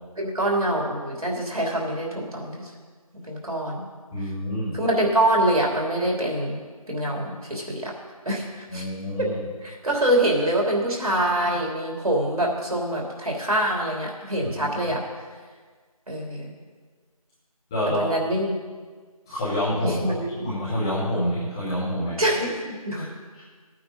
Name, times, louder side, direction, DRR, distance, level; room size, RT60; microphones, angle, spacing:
voice 1, 0.2-2.7 3.3-3.8 4.7-6.6 6.9-7.9 8.2-8.5 8.7-8.8 9.2-9.3 9.6-15.0 16.1-16.5 17.9-18.6 19.8-20.4 22.2-23.1, right 1 dB, 70° right, -2 dB, 3.3 m, -25 dB
voice 2, 4.1-4.7 8.7-9.4 14.6-14.7 17.7-18.0 19.3-20.1 20.4-22.2 22.9-23.0, left 1 dB, 5° left, -11 dB, 1.4 m, -27 dB
15.5 x 9.1 x 4.1 m, 1.5 s
figure-of-eight pair, 170°, 19 cm